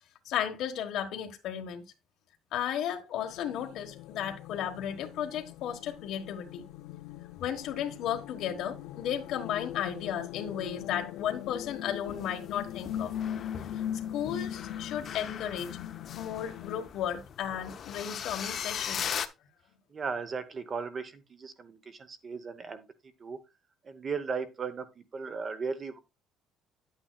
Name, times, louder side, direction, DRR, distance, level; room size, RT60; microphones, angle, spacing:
voice 1, 0.3-1.8 2.5-6.7 7.4-13.1 13.7-13.8 14.1-15.8 16.1-19.2, left 9 dB, 65° left, 1.4 m, -34 dB
sound 1, 3.2-16.9, left 11 dB, 85° left, 0.5 m, -41 dB
sound 2, 11.6-19.3, left 8 dB, 40° left, 0.7 m, -40 dB
voice 2, 19.9-22.9 23.2-23.4 23.8-26.0, right 5 dB, 30° right, 0.9 m, -36 dB
10.0 x 8.8 x 2.3 m
cardioid pair, 160°, 0 cm